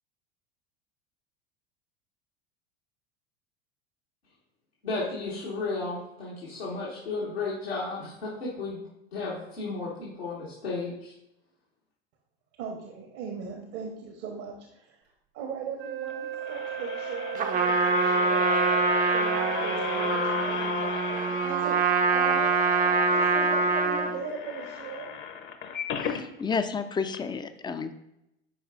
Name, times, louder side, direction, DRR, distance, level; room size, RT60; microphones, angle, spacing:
voice 1, 4.8-11.1, left 3 dB, 85° left, -7 dB, 1.7 m, -34 dB
voice 2, 12.6-15.0 15.3-22.4 22.8-25.2, right 5 dB, 55° right, 2 dB, 1.1 m, -39 dB
Wind instrument woodwind instrument, 15.8-20.5, right 6 dB, 75° right, 2.0 m, -35 dB
sound 1, 16.1-26.2 26.7-26.8 27.1-27.2, left 6 dB, 35° left, 0.8 m, -35 dB
Trumpet, 17.3-24.2, right 4 dB, 25° right, 0.6 m, -25 dB
voice 3, 26.0-27.9, left 5 dB, 15° left, 10 dB, 0.5 m, -31 dB
10.5 x 4.7 x 2.5 m, 0.84 s
figure-of-eight pair, 75°, 31 cm